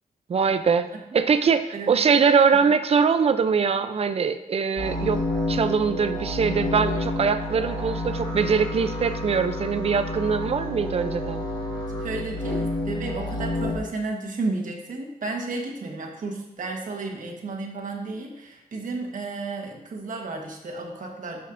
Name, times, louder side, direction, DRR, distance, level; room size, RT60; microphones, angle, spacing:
voice 1, 0.3-5.2 5.5-11.4, right 6 dB, 40° right, 10 dB, 0.5 m, -22 dB
voice 2, 0.9-1.2 1.7-2.0 2.5-2.6 12.0-21.5, right 3 dB, 60° right, 1 dB, 1.3 m, -33 dB
sound 1, 4.8-13.7, left 1 dB, 30° left, 1.5 m, -29 dB
11.5 x 5.2 x 2.6 m, 0.90 s
wide cardioid pair, 130°, 16 cm